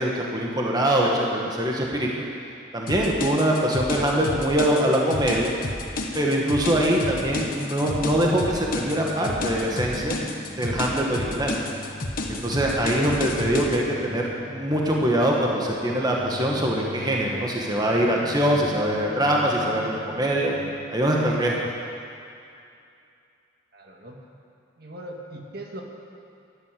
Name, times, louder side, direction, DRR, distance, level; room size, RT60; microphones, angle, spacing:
voice 1, 0.0-2.1 2.7-5.5 6.1-10.2 10.6-11.6 12.3-20.5 20.9-21.6, right 1 dB, 20° right, -2 dB, 1.6 m, -23 dB
sound 1, 2.9-13.8, left 2 dB, 50° left, 1.3 m, -31 dB
sound 2, 7.2-20.7, left 1 dB, 5° right, 1.3 m, -41 dB
voice 2, 23.7-24.2 24.8-25.8, right 1 dB, 55° right, 0 dB, 1.8 m, -39 dB
13.0 x 12.0 x 7.6 m, 2.5 s
head